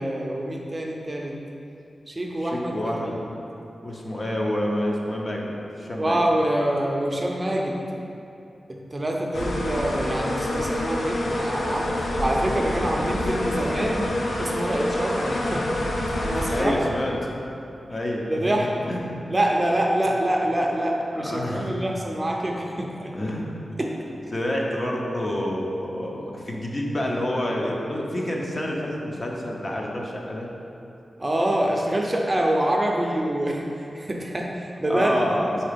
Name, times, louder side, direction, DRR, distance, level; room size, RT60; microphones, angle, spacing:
voice 1, 0.0-1.4 2.1-3.1 6.0-7.8 8.7-14.1 14.4-15.9 16.2-16.7 18.3-18.7 19.3-23.1 23.8-24.0 31.2-35.3, right 1 dB, 25° right, -1 dB, 0.5 m, -26 dB
voice 2, 2.4-3.2 3.8-5.4 5.8-6.2 16.5-17.1 17.9-18.5 18.9-19.2 21.2-21.7 23.1-23.5 24.3-30.5 34.9-35.6, left 1 dB, 35° left, -2 dB, 0.8 m, -28 dB
sound 1, 9.3-16.6, left 1 dB, 85° left, 0.7 m, -27 dB
4.8 x 4.2 x 5.1 m, 2.7 s
wide cardioid pair, 120°, 0 cm